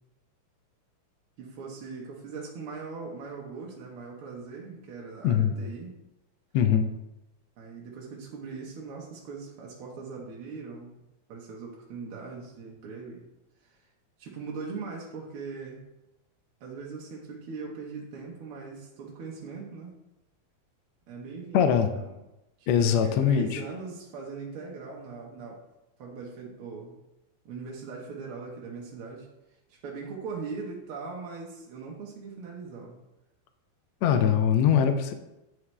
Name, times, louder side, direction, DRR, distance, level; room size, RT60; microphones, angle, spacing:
voice 1, 1.4-6.0 7.6-11.0 11.3-13.3 13.6-13.9 14.2-15.8 16.6-20.0 21.1-22.2 22.6-25.6 26.0-27.0 27.4-29.3 29.7-33.0, right 4 dB, 65° right, -2 dB, 1.5 m, -40 dB
voice 2, 5.2-5.6 6.5-6.9 21.5-21.9 22.7-23.6 34.0-35.1, left 8 dB, 75° left, 8 dB, 1.7 m, -22 dB
9.5 x 4.7 x 3.2 m, 0.93 s
omnidirectional pair, 3.5 m